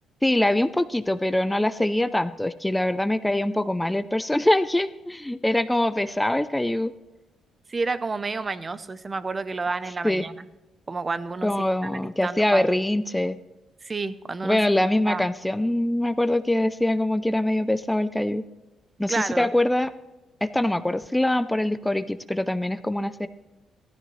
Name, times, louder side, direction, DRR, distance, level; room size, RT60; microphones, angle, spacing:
voice 1, 0.2-6.9 10.0-10.2 11.4-13.4 14.4-18.4 19.0-19.9 20.4-23.3, left 1 dB, 10° left, 12 dB, 0.5 m, -23 dB
voice 2, 7.7-10.5 10.9-11.9 12.2-12.7 13.8-15.3 19.1-19.5, right 3 dB, 30° right, 14 dB, 0.7 m, -30 dB
15.5 x 13.0 x 3.2 m, 1.1 s
cardioid pair, 90°, 0 cm